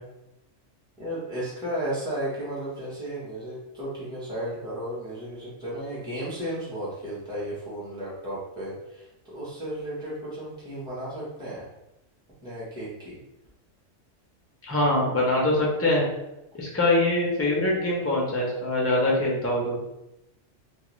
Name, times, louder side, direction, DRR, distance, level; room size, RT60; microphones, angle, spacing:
voice 1, 1.0-11.7 12.4-13.2, right 1 dB, 5° right, -8 dB, 0.7 m, -34 dB
voice 2, 14.7-16.0 16.6-19.8, left 1 dB, 20° left, -3 dB, 0.4 m, -23 dB
2.4 x 2.3 x 3.0 m, 0.90 s
omnidirectional pair, 1.3 m